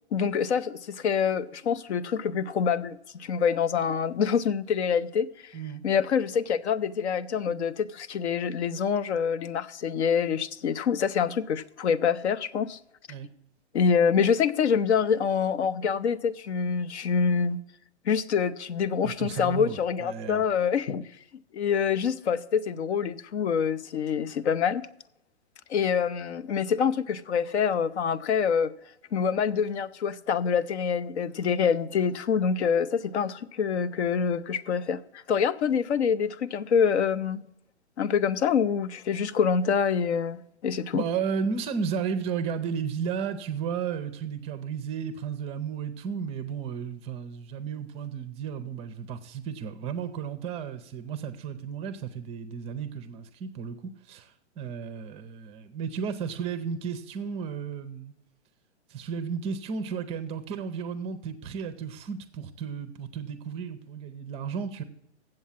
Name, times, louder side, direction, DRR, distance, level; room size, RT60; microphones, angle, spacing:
voice 1, 0.1-5.5 5.8-12.8 13.7-17.6 18.1-21.0 21.5-24.8 25.7-28.7 29.1-37.4 38.0-41.0, left 6 dB, 70° left, 0.7 m, -26 dB
voice 2, 5.5-5.8 13.1-13.3 19.0-20.4 40.9-53.8 54.0-58.1 58.9-64.8, right 6 dB, 20° right, 0.5 m, -33 dB
7.7 x 7.2 x 7.2 m
hypercardioid pair, 130°, 34 cm